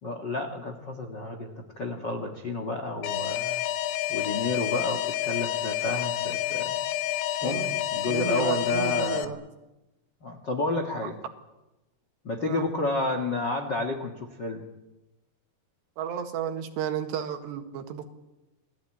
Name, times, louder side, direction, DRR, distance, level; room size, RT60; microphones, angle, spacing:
voice 1, 0.0-3.6 4.1-6.8 7.4-9.3 10.2-11.2 12.2-14.6, left 2 dB, 55° left, 5 dB, 1.2 m, -31 dB
Alarm, 3.0-9.3, left 12 dB, 75° left, 3.0 m, -29 dB
voice 2, 7.4-9.4 11.0-11.1 12.4-12.7 16.0-18.1, right 9 dB, 85° right, 7 dB, 3.9 m, -33 dB
28.0 x 18.0 x 8.9 m, 1.0 s
omnidirectional pair, 4.8 m